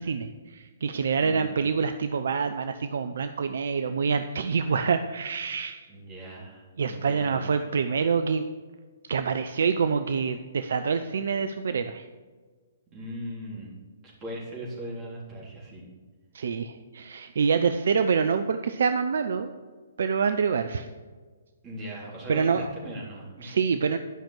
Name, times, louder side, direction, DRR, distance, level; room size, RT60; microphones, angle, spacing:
voice 1, 0.0-5.9 6.8-8.4 9.1-12.0 16.3-19.5 20.0-20.9 22.3-22.7 23.4-24.0, right 5 dB, 60° right, 9 dB, 0.5 m, -26 dB
voice 2, 1.1-1.6 5.9-7.5 12.9-13.7 14.0-15.8 21.6-23.6, equal, 25° right, -4 dB, 3.7 m, -39 dB
11.0 x 5.9 x 6.5 m, 1.4 s
figure-of-eight pair, 125°, 0 cm